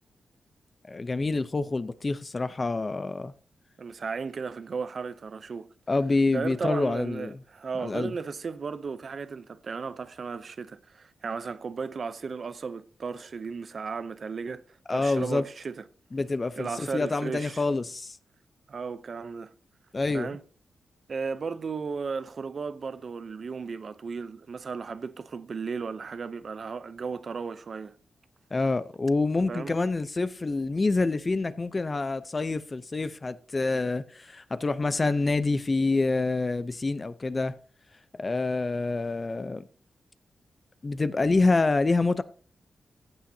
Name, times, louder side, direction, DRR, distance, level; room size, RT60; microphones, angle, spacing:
voice 1, 0.9-3.3 5.9-7.4 7.8-8.1 14.9-15.4 16.1-18.2 19.9-20.4 28.5-37.6 38.2-39.6 40.8-42.2, left 3 dB, 30° left, 0.5 m, -27 dB
voice 2, 3.8-5.7 6.3-14.6 14.9-15.8 16.6-17.6 18.7-19.5 20.1-20.4 21.1-28.0 29.5-29.7, right 5 dB, 50° right, 0.6 m, -35 dB
15.0 x 8.6 x 2.7 m
wide cardioid pair, 125°, 0 cm